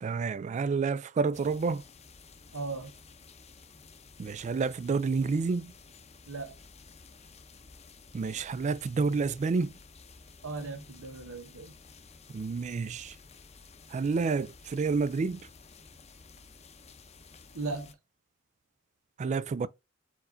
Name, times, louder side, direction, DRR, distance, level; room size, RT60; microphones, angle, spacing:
voice 1, 0.0-1.8 4.2-5.7 8.1-9.7 12.3-13.2 13.9-15.4 19.2-19.7, right 4 dB, 35° right, 0.3 m, -29 dB
sound 1, 1.3-17.9, left 4 dB, 30° left, 0.6 m, -53 dB
voice 2, 2.5-2.9 6.3-6.6 10.4-11.7 17.5-18.0, right 3 dB, 90° right, 1.0 m, -37 dB
4.5 x 4.3 x 2.6 m
head